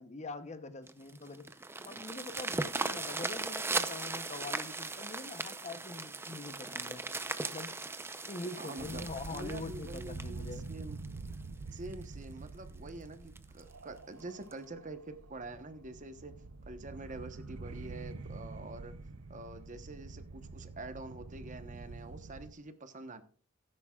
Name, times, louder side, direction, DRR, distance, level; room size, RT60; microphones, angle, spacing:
voice 1, 0.0-1.5 1.8-7.1 7.5-7.8 8.3-10.6, left 3 dB, 30° left, 0.8 m, -44 dB
sound 1, 0.9-11.3 11.9-12.0 12.5-12.6 12.9-13.0 13.4-13.6 14.5-14.6, right 3 dB, 10° right, 0.6 m, -38 dB
voice 2, 8.6-11.0 11.7-16.3 16.7-19.0 19.3-23.2, right 2 dB, 35° right, 1.0 m, -46 dB
sound 2, 8.8-22.5, right 3 dB, 90° right, 0.7 m, -46 dB
16.5 x 9.9 x 2.4 m
head